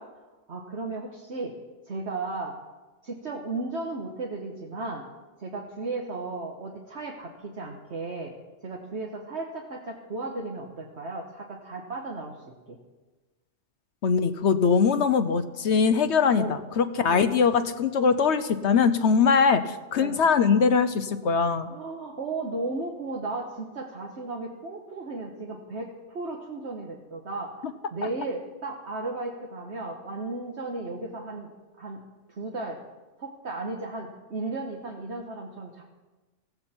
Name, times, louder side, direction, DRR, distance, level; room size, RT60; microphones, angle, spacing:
voice 1, 0.5-1.5 1.8-2.6 3.0-5.1 5.4-8.3 8.6-12.8 16.4-16.5 17.1-17.3 20.0-20.2 21.7-27.6 27.9-31.5 31.8-32.0 32.3-32.8 33.2-35.8, right 3 dB, 60° right, -1 dB, 1.6 m, -35 dB
voice 2, 14.0-21.7, left 5 dB, 70° left, 10 dB, 1.0 m, -22 dB
15.5 x 15.5 x 4.4 m, 1.2 s
omnidirectional pair, 1.3 m